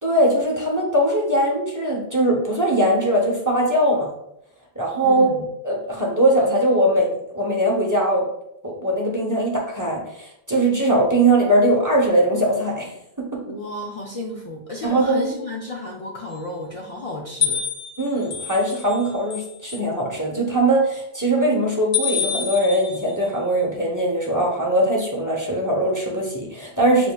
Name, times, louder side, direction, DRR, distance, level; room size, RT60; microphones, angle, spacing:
voice 1, 0.0-4.1 4.8-5.4 5.6-8.3 8.6-12.9 13.2-13.4 14.8-15.3 18.0-27.1, right 1 dB, 20° right, -2 dB, 0.8 m, -20 dB
voice 2, 5.0-5.5 13.5-17.6, left 2 dB, 45° left, -2 dB, 0.5 m, -32 dB
sound 1, 17.4-19.0 19.3-19.8 21.9-23.1, left 7 dB, 80° left, 0.9 m, -26 dB
7.0 x 2.7 x 2.3 m, 0.78 s
omnidirectional pair, 1.0 m